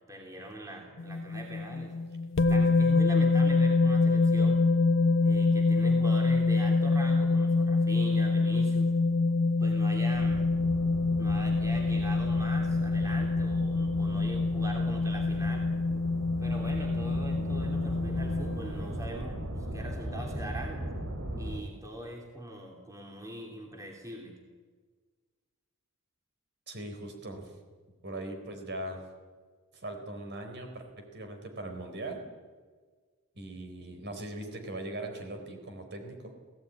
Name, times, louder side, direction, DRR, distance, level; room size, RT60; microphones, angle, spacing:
voice 1, 0.1-1.9 2.5-4.6 5.2-8.9 9.6-10.4 11.2-15.7 16.4-20.8 21.4-24.3, right 1 dB, 15° right, 1 dB, 2.8 m, -42 dB
sound 1, 1.0-18.9, left 3 dB, 60° left, 1.1 m, -26 dB
sound 2, 10.1-21.6, equal, 75° right, 3.9 m, -38 dB
voice 2, 26.7-27.5 28.0-29.0 29.7-32.2 33.4-36.3, right 1 dB, 50° right, 5 dB, 4.2 m, -40 dB
18.5 x 16.0 x 9.5 m, 1.5 s
head